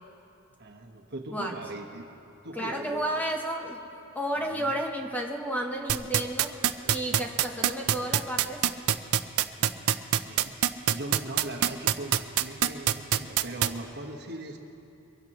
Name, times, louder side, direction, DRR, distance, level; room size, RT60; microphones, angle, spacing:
voice 1, 0.6-2.1 2.4-3.2 4.3-4.8 9.6-9.9 10.3-14.6, right 1 dB, 50° right, 2 dB, 1.3 m, -40 dB
voice 2, 2.6-3.8 4.1-8.6, right 1 dB, 5° left, 1 dB, 1.0 m, -32 dB
sound 1, 5.9-13.7, right 10 dB, 70° right, 0.5 m, -23 dB
23.5 x 16.5 x 3.1 m, 2.8 s
head